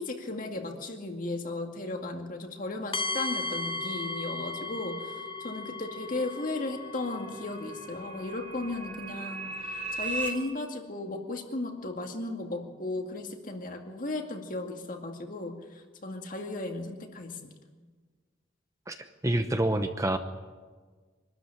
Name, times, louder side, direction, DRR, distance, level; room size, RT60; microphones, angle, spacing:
voice 1, 0.0-17.5, left 2 dB, 40° left, 3 dB, 2.2 m, -35 dB
sound 1, 2.9-8.9, left 3 dB, 25° left, 0.8 m, -37 dB
sound 2, 6.0-10.3, right 2 dB, 40° right, 3.9 m, -38 dB
voice 2, 19.2-20.2, right 1 dB, 15° right, 7 dB, 0.8 m, -27 dB
24.5 x 13.0 x 10.0 m, 1.4 s
head